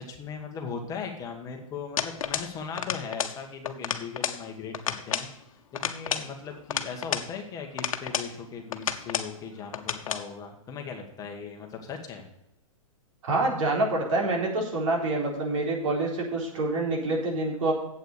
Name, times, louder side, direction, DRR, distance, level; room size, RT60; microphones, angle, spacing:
voice 1, 0.0-5.3 5.7-12.2, left 5 dB, 20° left, 3 dB, 1.4 m, -38 dB
sound 1, 2.0-2.5 2.8-3.4 3.7-4.4 4.7-5.3 5.7-7.3 7.8-8.3 8.7-9.3 9.7-10.3, left 8 dB, 80° left, 1.0 m, -31 dB
voice 2, 13.2-17.7, right 2 dB, 65° right, -1 dB, 4.1 m, -26 dB
8.2 x 8.1 x 6.5 m, 0.84 s
hypercardioid pair, 140°, 17 cm